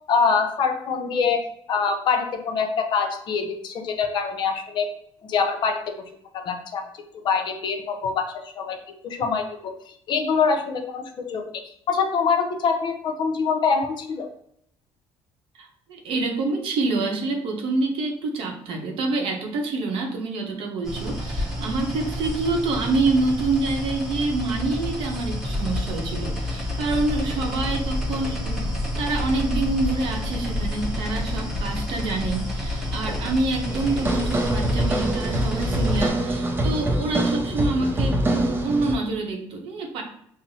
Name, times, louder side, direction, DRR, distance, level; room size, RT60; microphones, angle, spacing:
voice 1, 0.1-1.4 1.7-4.9 5.3-6.0 6.3-6.9 7.2-8.8 9.0-9.7 10.1-14.3, left 5 dB, 50° left, 5 dB, 0.6 m, -24 dB
voice 2, 15.6-28.7 29.0-40.0, right 3 dB, 70° right, 2 dB, 0.8 m, -26 dB
sound 1, 20.8-36.1, left 1 dB, 5° right, 0.9 m, -29 dB
sound 2, 33.7-39.0, right 1 dB, 20° right, 0.5 m, -24 dB
5.6 x 2.0 x 2.7 m, 0.70 s
cardioid pair, 115°, 10 cm